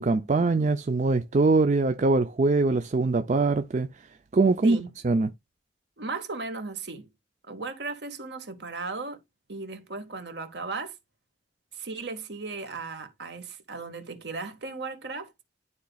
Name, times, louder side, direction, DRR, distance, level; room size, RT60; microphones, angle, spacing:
voice 1, 0.0-3.9 4.3-4.8 5.0-5.3, right 3 dB, 40° right, 0.4 m, -22 dB
voice 2, 6.0-7.1 7.5-9.2 9.5-10.9 11.7-15.3, right 3 dB, 65° right, 1.6 m, -36 dB
12.0 x 4.1 x 2.3 m
head